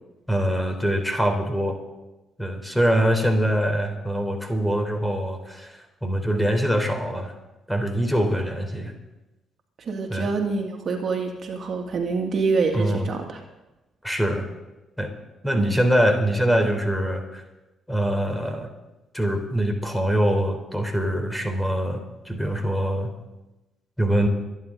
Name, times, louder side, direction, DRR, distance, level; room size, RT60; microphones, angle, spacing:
voice 1, 0.3-1.8 2.4-7.3 7.7-8.9 10.1-10.3 12.7-13.1 14.0-14.5 15.0-15.1 15.4-17.4 17.9-18.7 19.1-22.0 22.3-23.1 24.0-24.3, equal, 5° left, 5 dB, 3.6 m, -23 dB
voice 2, 9.8-13.4 15.5-15.8, right 4 dB, 50° right, 2 dB, 2.3 m, -26 dB
25.0 x 10.5 x 4.0 m, 1.0 s
hypercardioid pair, 45°, 0 cm